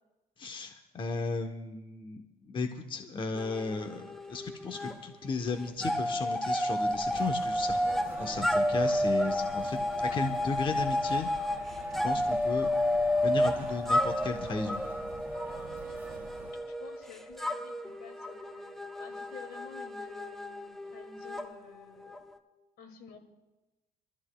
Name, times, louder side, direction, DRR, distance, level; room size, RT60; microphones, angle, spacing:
voice 1, 0.4-7.8 8.2-11.3 11.9-12.7 13.2-14.8, left 4 dB, 30° left, 5 dB, 0.9 m, -35 dB
sound 1, 3.4-5.0 5.2-22.3, left 1 dB, ahead, 0.7 m, -31 dB
sound 2, 6.9-16.5, right 2 dB, 15° right, 3.0 m, -46 dB
voice 2, 16.7-22.2 22.8-23.2, left 6 dB, 75° left, 4 dB, 2.2 m, -51 dB
26.5 x 13.5 x 2.2 m, 1.1 s
cardioid pair, 110°, 17 cm